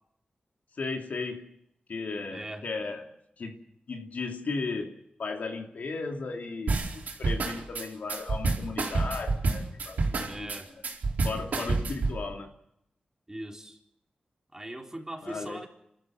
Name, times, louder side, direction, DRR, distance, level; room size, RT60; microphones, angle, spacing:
voice 1, 0.7-1.5 1.9-10.5 11.2-12.5 15.2-15.7, left 3 dB, 75° left, 2.8 m, -36 dB
voice 2, 2.3-2.7 10.3-10.7 13.3-13.8 14.5-15.7, right 1 dB, 20° right, 4.1 m, -40 dB
sound 1, 6.7-12.2, right 3 dB, 90° right, 4.4 m, -28 dB
29.5 x 13.5 x 7.6 m
cardioid pair, 65°, 3 cm